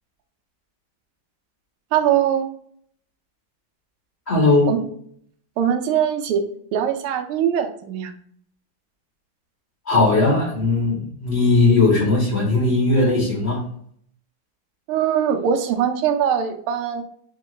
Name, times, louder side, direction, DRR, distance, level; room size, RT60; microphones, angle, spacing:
voice 1, 1.9-2.5 4.7-4.8 5.6-6.5 6.7-8.1 14.9-17.0, right 9 dB, 85° right, 7 dB, 1.5 m, -21 dB
voice 2, 4.3-4.7 9.9-13.6, left 3 dB, 35° left, -4 dB, 1.3 m, -18 dB
3.7 x 3.6 x 3.2 m, 0.63 s
omnidirectional pair, 2.3 m